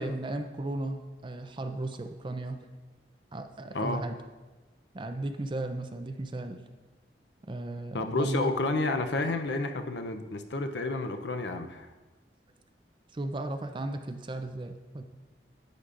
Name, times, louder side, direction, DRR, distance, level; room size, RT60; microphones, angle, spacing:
voice 1, 0.0-2.6 3.3-4.2 4.9-6.6 7.5-8.5 13.1-15.0, right 2 dB, 30° right, 7 dB, 0.5 m, -35 dB
voice 2, 7.9-11.9, left 2 dB, 80° left, 7 dB, 0.6 m, -30 dB
10.5 x 8.2 x 2.5 m, 1.2 s
head